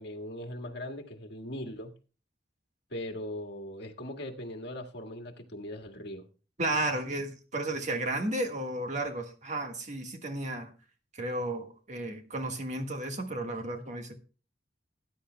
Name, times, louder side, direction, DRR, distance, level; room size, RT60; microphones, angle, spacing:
voice 1, 0.0-1.9 2.9-6.3, left 1 dB, 60° left, 1.7 m, -40 dB
voice 2, 6.6-10.7 11.2-14.1, right 2 dB, 40° right, 1.6 m, -33 dB
19.0 x 10.0 x 2.2 m
head